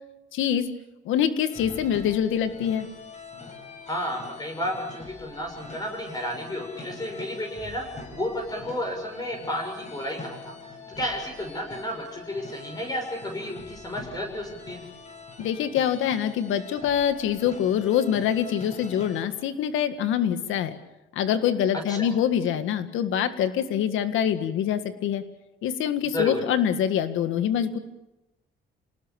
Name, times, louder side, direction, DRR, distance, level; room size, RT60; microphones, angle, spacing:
voice 1, 0.3-0.7 1.1-2.9 15.4-20.8 21.1-25.2 25.6-27.8, left 9 dB, 90° left, 10 dB, 1.8 m, -25 dB
bagpipe-victory, 1.5-19.2, left 4 dB, 35° left, 6.6 m, -44 dB
voice 2, 3.8-10.5 10.9-14.8 21.9-22.1 26.1-26.4, left 1 dB, 20° left, 2 dB, 6.5 m, -32 dB
28.0 x 19.0 x 7.1 m, 0.95 s
cardioid pair, 90°, 20 cm